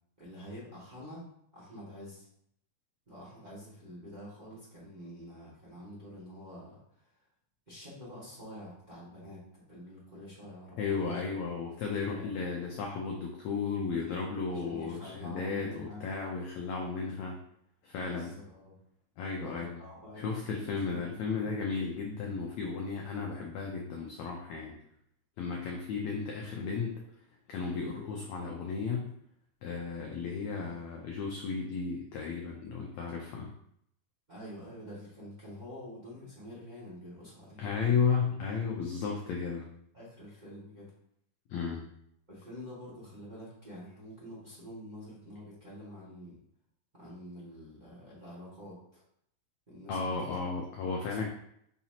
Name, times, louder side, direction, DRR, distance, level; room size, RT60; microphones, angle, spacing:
voice 1, 0.2-1.2 1.5-2.3 3.1-7.3 7.7-9.4 9.7-11.2 12.1-12.3 14.5-16.1 18.0-18.8 19.4-21.5 34.3-37.6 39.9-40.9 42.3-46.4 46.9-49.0 49.7-50.4 50.8-51.2, equal, 20° right, -7 dB, 1.3 m, -47 dB
voice 2, 10.8-17.4 17.8-18.3 19.2-19.8 20.2-24.8 25.4-27.0 27.5-29.1 29.6-33.5 37.6-39.6 41.5-41.8 49.9-51.3, left 5 dB, 85° left, 0 dB, 1.5 m, -34 dB
5.9 x 5.7 x 2.9 m, 0.71 s
omnidirectional pair, 4.2 m